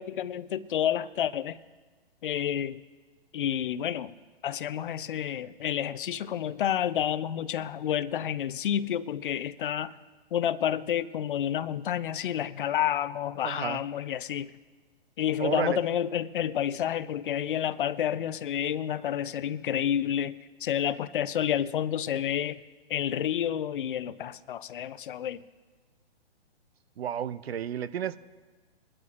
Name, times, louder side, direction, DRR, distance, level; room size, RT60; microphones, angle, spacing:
voice 1, 0.0-1.6 2.2-2.8 3.3-4.1 4.4-9.9 10.3-14.5 15.2-22.6 22.9-25.4, left 10 dB, 55° left, 16 dB, 0.6 m, -29 dB
voice 2, 13.4-13.8 15.4-15.8 27.0-28.2, right 9 dB, 70° right, 15 dB, 0.6 m, -31 dB
22.5 x 12.0 x 2.5 m, 1.4 s
hypercardioid pair, 130°, 32 cm